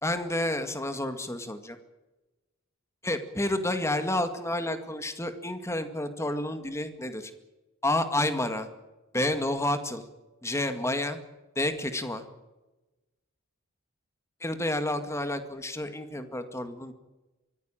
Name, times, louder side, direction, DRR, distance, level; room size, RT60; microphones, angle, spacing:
voice 1, 0.0-1.8 3.0-7.3 7.8-8.7 9.1-10.0 10.4-11.2 11.6-12.2 14.4-16.9, left 1 dB, 15° left, 8 dB, 2.0 m, -30 dB
24.0 x 15.5 x 9.1 m, 1.1 s
head